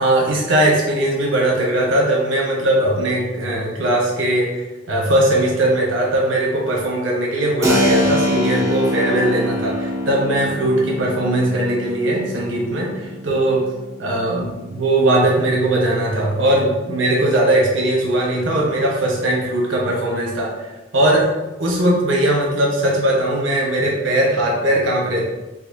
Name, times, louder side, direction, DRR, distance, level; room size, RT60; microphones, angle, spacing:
voice 1, 0.0-13.7 14.0-20.7 20.9-21.3 21.6-25.2, right 1 dB, 85° right, -2 dB, 1.0 m, -19 dB
Keyboard (musical), 7.6-16.0, left 1 dB, 15° right, 0.6 m, -25 dB
4.1 x 2.7 x 2.7 m, 1.1 s
head